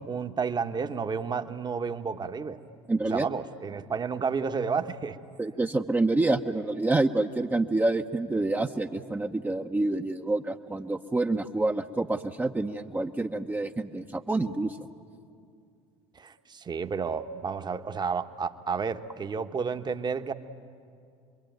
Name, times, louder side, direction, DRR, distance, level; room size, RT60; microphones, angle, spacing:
voice 1, 0.0-2.6 3.1-5.2 16.1-20.3, right 5 dB, 30° right, 8 dB, 1.2 m, -31 dB
voice 2, 2.9-3.3 5.4-14.9, right 2 dB, 15° right, 4 dB, 0.9 m, -27 dB
27.0 x 22.0 x 9.3 m, 2.3 s
hypercardioid pair, 70°, 15 cm